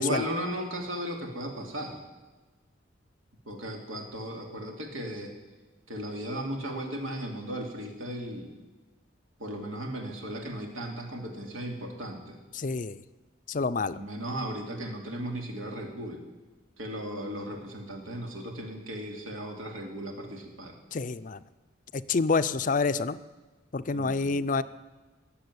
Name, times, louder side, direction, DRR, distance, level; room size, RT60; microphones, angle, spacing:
voice 1, 0.0-2.0 3.5-5.3 5.9-8.5 9.4-12.4 13.9-16.2 16.8-20.8 23.9-24.4, right 1 dB, 90° right, 2 dB, 2.7 m, -36 dB
voice 2, 12.6-13.0 13.5-14.0 20.9-21.4 21.9-23.2 23.7-24.6, left 4 dB, 40° left, 14 dB, 0.5 m, -27 dB
18.5 x 7.3 x 9.7 m, 1.2 s
head